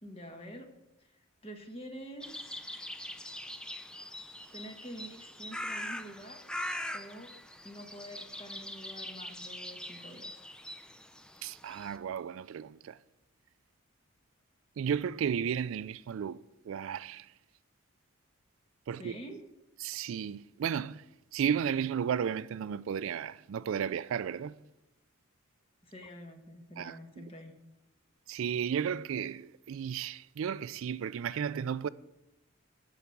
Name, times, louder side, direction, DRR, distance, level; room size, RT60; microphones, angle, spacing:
voice 1, 0.0-0.7 1.4-2.7 4.5-6.4 6.9-7.3 7.6-10.3 19.0-19.4 25.8-27.5, equal, 25° left, 1.4 m, -47 dB
sound 1, 2.2-12.0, left 1 dB, 5° left, 0.4 m, -42 dB
voice 2, 11.4-13.0 14.8-17.3 18.9-19.2 19.8-21.0 21.3-24.6 26.8-27.3 28.3-31.9, right 8 dB, 70° right, 0.3 m, -34 dB
12.5 x 4.9 x 7.1 m
head